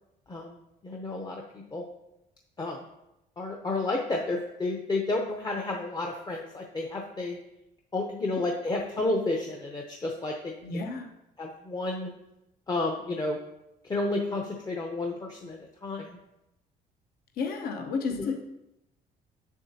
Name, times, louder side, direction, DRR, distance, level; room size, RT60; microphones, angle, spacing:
voice 1, 0.3-0.6 0.8-1.8 2.6-2.8 3.4-7.4 7.9-10.5 11.4-12.1 12.7-13.4 13.9-16.2 18.1-18.3, left 2 dB, 25° left, 1 dB, 0.7 m, -31 dB
voice 2, 10.6-11.1 17.4-18.4, left 4 dB, 65° left, 4 dB, 1.0 m, -31 dB
7.0 x 6.8 x 2.8 m, 0.90 s
cardioid pair, 110°, 17 cm